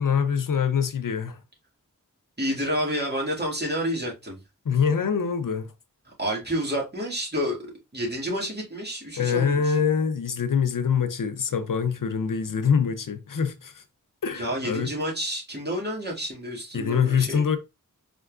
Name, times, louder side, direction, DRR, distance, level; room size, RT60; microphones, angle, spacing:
voice 1, 0.0-1.4 4.7-5.7 9.2-13.8 14.2-14.9 16.7-17.6, left 6 dB, 75° left, 0.6 m, -24 dB
voice 2, 2.4-4.4 6.2-9.8 14.3-17.4, equal, 30° right, 2.0 m, -29 dB
4.4 x 3.5 x 2.4 m
wide cardioid pair, 50°, 33 cm